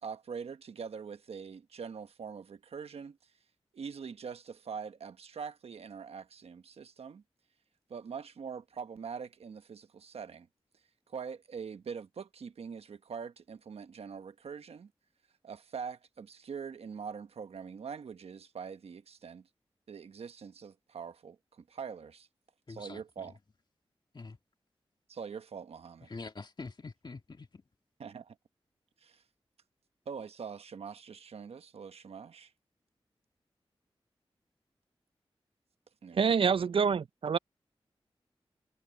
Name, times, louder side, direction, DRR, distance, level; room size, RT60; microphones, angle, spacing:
voice 1, 0.0-3.3 3.7-7.2 7.9-10.5 11.1-14.9 15.4-19.5 19.9-22.3 22.7-23.3 25.1-26.1 28.0-28.4 29.0-29.2 30.1-32.5 36.0-36.2, right 6 dB, 85° right, 1.1 m, -43 dB
voice 2, 22.7-23.3 24.1-24.4 26.1-27.6, left 3 dB, 50° left, 2.1 m, -45 dB
voice 3, 36.2-37.4, right 6 dB, 60° right, 0.4 m, -26 dB
cardioid pair, 55°, 10 cm